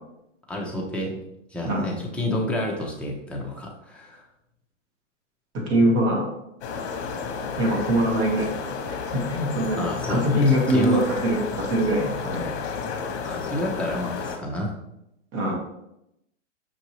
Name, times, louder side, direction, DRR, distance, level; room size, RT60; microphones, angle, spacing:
voice 1, 0.5-1.1 1.5-4.2 9.8-11.0 13.2-14.7, left 1 dB, 5° left, -3 dB, 0.7 m, -29 dB
voice 2, 5.5-6.3 7.6-8.5 8.9-9.8 10.1-12.5 15.3-15.5, equal, 35° right, -1 dB, 1.4 m, -23 dB
sound 1, 6.6-14.4, left 5 dB, 60° left, 0.9 m, -31 dB
5.8 x 2.7 x 3.0 m, 0.82 s
hypercardioid pair, 130°, 37 cm